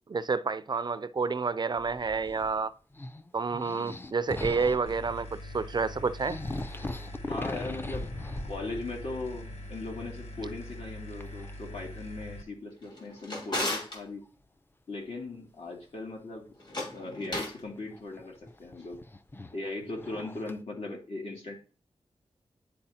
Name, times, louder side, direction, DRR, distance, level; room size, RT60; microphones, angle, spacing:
voice 1, 0.1-2.7 3.3-6.4, right 4 dB, 40° right, 0.4 m, -29 dB
sound 1, 1.7-2.6 2.9-5.0 5.7-5.8 6.0-9.1 9.4-9.9 11.1-11.5 12.2-12.3 14.2-14.3 17.4-20.6, left 2 dB, 20° left, 0.5 m, -40 dB
sound 2, 4.9-12.4, left 1 dB, 90° left, 0.8 m, -43 dB
voice 2, 7.3-8.1 8.4-14.2 14.9-16.4 16.9-19.0 19.5-21.5, left 2 dB, 70° left, 2.5 m, -39 dB
Drawer open or close, 12.8-14.0 16.6-17.6, left 1 dB, 45° left, 2.4 m, -34 dB
10.0 x 4.4 x 2.8 m
wide cardioid pair, 100°, 11 cm